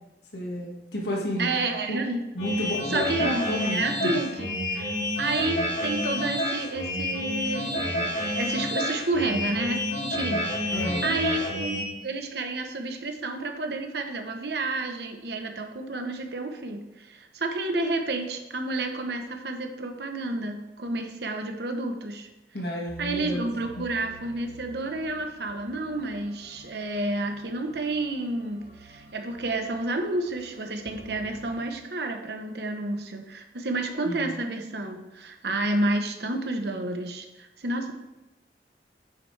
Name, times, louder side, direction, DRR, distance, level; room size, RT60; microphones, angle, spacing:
voice 1, 0.3-1.6 1.9-2.0 2.3-4.2 4.7-5.0 10.7-11.1 22.5-23.4 34.0-34.3, left 1 dB, 70° left, -2 dB, 1.8 m, -31 dB
voice 2, 1.4-2.3 2.9-4.9 5.2-22.3 23.0-37.9, right 2 dB, 70° right, 5 dB, 1.0 m, -30 dB
sound 1, 2.4-11.8, left 1 dB, 85° left, 2.6 m, -29 dB
sound 2, 22.9-31.6, right 3 dB, 40° right, 1.2 m, -50 dB
9.1 x 7.2 x 3.3 m, 1.0 s
head